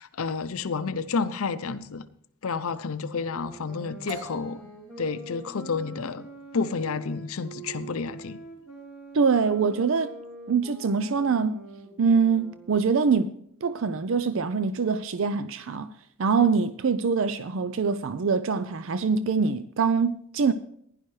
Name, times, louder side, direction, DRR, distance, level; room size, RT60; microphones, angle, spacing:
voice 1, 0.0-2.1 2.4-4.6 5.0-6.3 6.5-8.4, left 4 dB, 75° left, 0.6 m, -30 dB
sound 1, 3.1-13.1, right 2 dB, ahead, 3.0 m, -44 dB
sound 2, 4.1-11.7, equal, 80° right, 2.4 m, -49 dB
voice 2, 9.1-10.1 10.5-11.6 12.0-13.4 13.6-15.9 16.2-20.5, right 5 dB, 60° right, 0.5 m, -24 dB
15.5 x 10.5 x 3.2 m
head